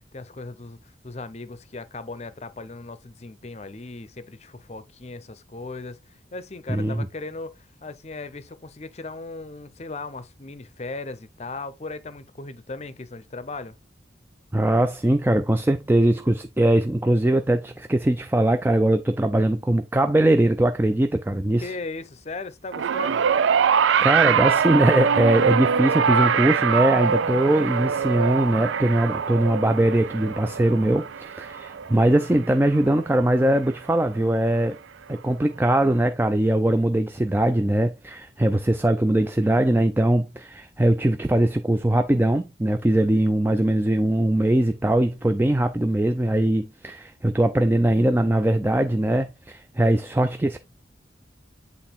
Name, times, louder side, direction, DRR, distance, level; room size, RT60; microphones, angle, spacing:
voice 1, 0.1-13.8 21.6-23.2, left 3 dB, 35° left, 0.6 m, -37 dB
voice 2, 6.7-7.1 14.5-21.8 24.0-34.8 35.1-50.6, right 1 dB, 10° right, 0.3 m, -21 dB
sound 1, 22.7-33.2 34.2-34.3, right 7 dB, 90° right, 0.4 m, -23 dB
8.0 x 3.6 x 4.1 m
head